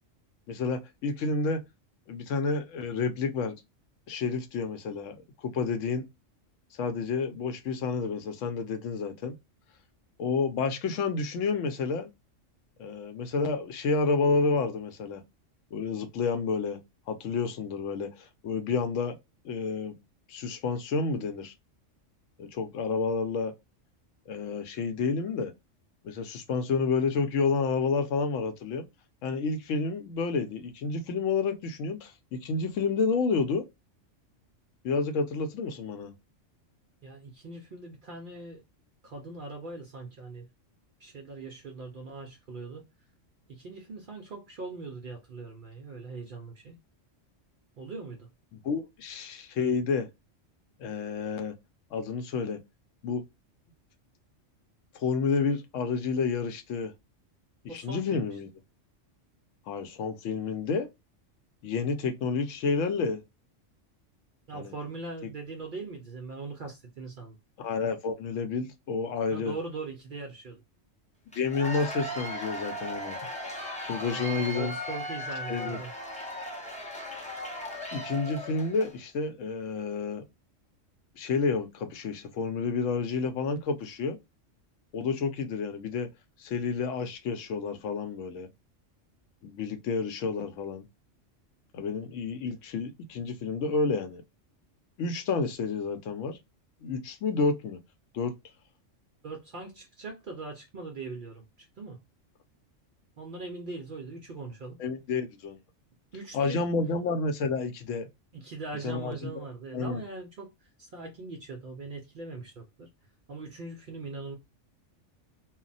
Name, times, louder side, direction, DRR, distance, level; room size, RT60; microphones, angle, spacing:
voice 1, 0.5-1.6 2.1-3.6 4.1-5.2 5.4-6.1 6.8-9.3 10.2-12.1 12.8-15.2 15.7-16.8 17.1-19.2 19.4-20.0 20.3-21.5 22.4-23.5 24.3-25.5 26.0-28.9 29.2-33.7 34.8-36.1 48.5-50.1 50.8-51.5 51.9-52.6 53.0-53.2 54.9-56.9 57.6-58.5 59.7-60.9 61.6-63.2 64.5-64.7 65.2-65.3 67.6-69.5 71.3-73.2 73.9-74.7 75.5-75.8 77.9-80.2 81.2-84.2 84.9-86.1 86.4-88.5 89.4-90.8 91.7-94.2 95.0-96.4 96.8-97.8 98.1-98.3 104.8-105.6 106.3-108.1 108.8-109.3 109.7-110.0, left 4 dB, 80° left, 0.9 m, -30 dB
voice 2, 37.0-38.6 39.0-40.5 41.0-42.8 43.5-46.8 47.8-48.3 57.7-58.4 64.5-67.4 69.3-70.6 74.0-75.9 99.2-102.0 103.2-104.8 106.1-106.7 108.3-112.9 113.3-114.4, right 3 dB, 60° right, 0.5 m, -41 dB
Cheering / Applause / Crowd, 71.3-79.0, equal, 10° left, 0.5 m, -37 dB
2.3 x 2.1 x 3.9 m
omnidirectional pair, 1.3 m